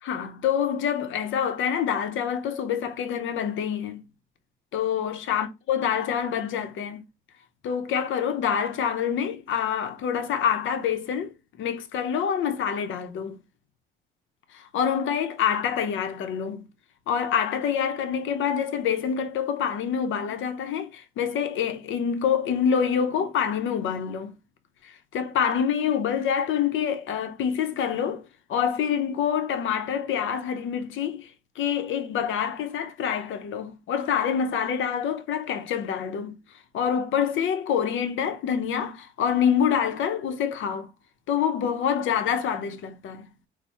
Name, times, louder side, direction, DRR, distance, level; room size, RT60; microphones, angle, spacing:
voice 1, 0.0-4.1 4.7-7.1 7.6-13.4 14.5-16.7 17.1-24.4 24.8-36.4 36.7-40.9 41.3-43.3, left 8 dB, 75° left, 0.8 m, -26 dB
4.3 x 2.2 x 4.6 m
cardioid pair, 90°, 20 cm